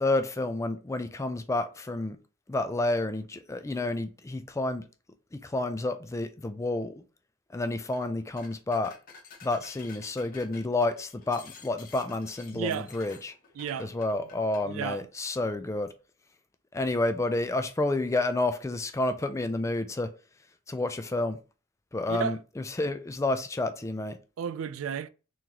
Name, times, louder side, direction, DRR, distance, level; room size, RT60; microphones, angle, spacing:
voice 1, 0.0-2.2 2.5-4.9 5.3-6.9 7.5-8.9 9.4-13.3 13.8-15.9 16.7-20.1 20.7-21.4 21.9-24.2, left 2 dB, 15° left, 0.3 m, -30 dB
sound 1, 7.8-8.1 8.4-14.7, left 5 dB, 45° left, 0.9 m, -51 dB
voice 2, 12.5-12.9 13.6-13.9 14.6-15.1 22.1-22.4 24.4-25.1, right 7 dB, 75° right, 0.3 m, -32 dB
3.8 x 3.0 x 2.8 m
head